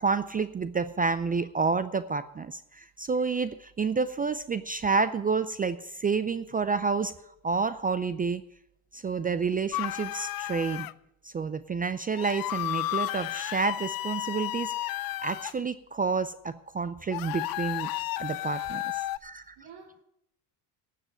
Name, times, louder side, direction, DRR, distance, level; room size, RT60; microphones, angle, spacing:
voice 1, 0.0-7.1 7.4-8.4 8.9-10.9 11.2-17.9 18.2-19.5, right 5 dB, 20° right, 13 dB, 0.4 m, -29 dB
sound 1, 9.7-10.9 12.2-15.5 17.1-19.2, left 15 dB, 50° left, 0.5 m, -33 dB
voice 2, 18.9-20.0, right 5 dB, 55° right, -2 dB, 2.8 m, -53 dB
12.0 x 7.6 x 9.1 m, 0.78 s
supercardioid pair, 105°, 48 cm